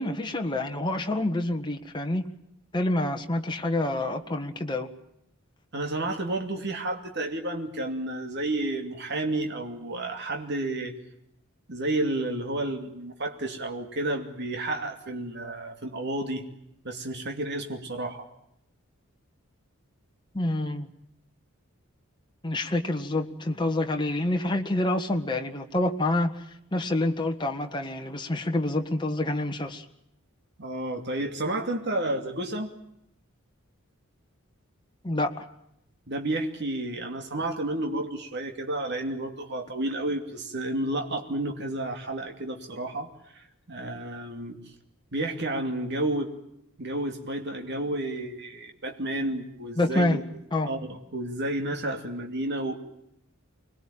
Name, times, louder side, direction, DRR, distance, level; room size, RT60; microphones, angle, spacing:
voice 1, 0.0-2.3 2.7-4.9 20.3-20.9 22.4-26.4 26.7-29.9 35.0-35.5 49.8-50.2 50.5-50.7, left 1 dB, 20° left, 4 dB, 1.7 m, -27 dB
voice 2, 5.7-11.0 11.7-16.4 16.8-18.3 30.6-32.7 36.1-44.6 45.1-46.3 46.8-50.2 50.6-52.8, right 1 dB, 50° right, 4 dB, 2.7 m, -31 dB
25.5 x 20.5 x 8.9 m, 0.77 s
head